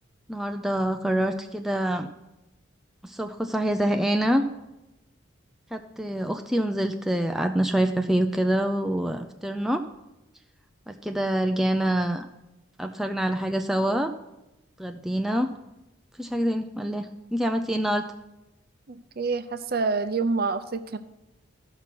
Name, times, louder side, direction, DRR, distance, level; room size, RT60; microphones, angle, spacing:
voice 1, 0.3-2.1 3.0-4.4 5.7-9.8 10.9-12.3 12.8-14.1 14.8-15.5 16.2-18.0, right 1 dB, ahead, 4 dB, 0.4 m, -26 dB
voice 2, 18.9-21.0, right 4 dB, 50° right, 10 dB, 0.6 m, -27 dB
14.0 x 5.9 x 6.0 m, 0.97 s
head